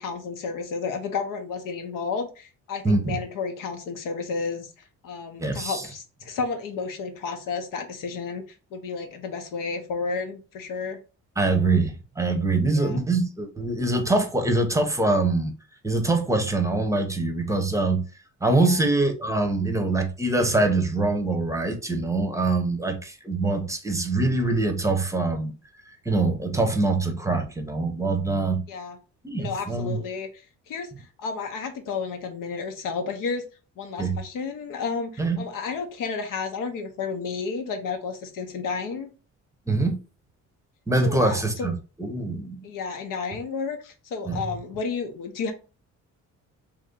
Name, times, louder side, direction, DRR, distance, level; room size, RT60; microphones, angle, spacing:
voice 1, 0.0-4.7 5.0-8.4 8.7-11.0 12.7-13.0 18.6-18.9 28.7-29.0 29.4-30.3 30.7-33.4 33.8-39.1 41.0-41.7 42.6-45.5, left 5 dB, 85° left, 0.9 m, -32 dB
voice 2, 2.8-3.2 5.4-5.9 11.4-15.5 15.8-18.0 18.4-25.6 26.0-28.6 29.2-30.0 34.0-34.2 35.2-35.4 39.7-40.0 40.9-42.6 44.3-44.4, right 2 dB, 10° right, 0.7 m, -24 dB
3.0 x 2.7 x 3.7 m
cardioid pair, 105°, 32 cm